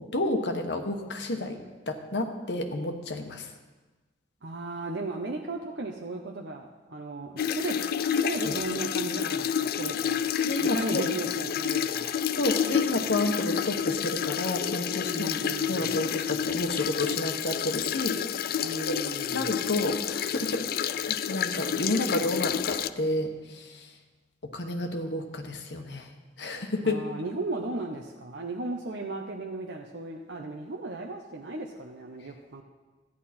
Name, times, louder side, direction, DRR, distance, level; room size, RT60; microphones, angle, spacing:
voice 1, 0.1-1.6 1.9-3.5 8.4-8.6 10.4-11.0 12.3-15.3 15.7-18.6 19.3-23.9 24.4-26.1 26.4-27.0, left 2 dB, 70° left, 4 dB, 1.1 m, -30 dB
voice 2, 4.4-10.2 10.6-12.2 15.1-15.9 18.6-19.5 26.8-32.6, right 2 dB, 80° right, 1 dB, 0.8 m, -36 dB
sound 1, 7.4-22.9, left 8 dB, 55° left, 0.4 m, -29 dB
14.0 x 9.8 x 4.3 m, 1.2 s
head